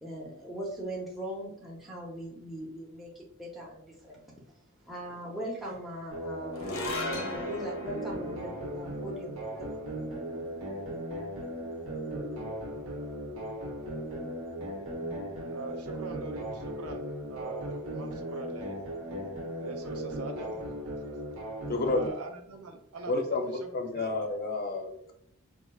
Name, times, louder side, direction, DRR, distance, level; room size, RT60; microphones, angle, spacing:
voice 1, 0.0-4.2 4.8-9.9, right 1 dB, ahead, -3 dB, 0.6 m, -40 dB
sound 1, 6.1-22.1, right 1 dB, 65° right, 0.9 m, -37 dB
sound 2, 6.5-13.0, left 1 dB, 80° left, 0.8 m, -41 dB
voice 2, 15.4-18.8 19.6-24.3, right 3 dB, 85° right, 5 dB, 0.6 m, -44 dB
voice 3, 21.7-22.1 23.1-25.1, left 3 dB, 45° left, 4 dB, 0.6 m, -30 dB
4.5 x 2.4 x 2.3 m, 0.73 s
head